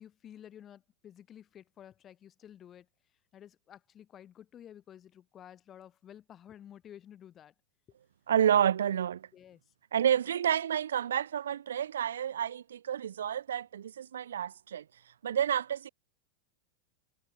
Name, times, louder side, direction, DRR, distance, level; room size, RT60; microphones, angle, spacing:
voice 1, 0.0-2.9 3.3-7.5 9.3-9.6, left 10 dB, 25° left, 1.7 m, -52 dB
voice 2, 8.3-9.3 9.9-14.8 15.2-15.9, right 9 dB, 65° right, 0.4 m, -29 dB
figure-of-eight pair, 90°, 0 cm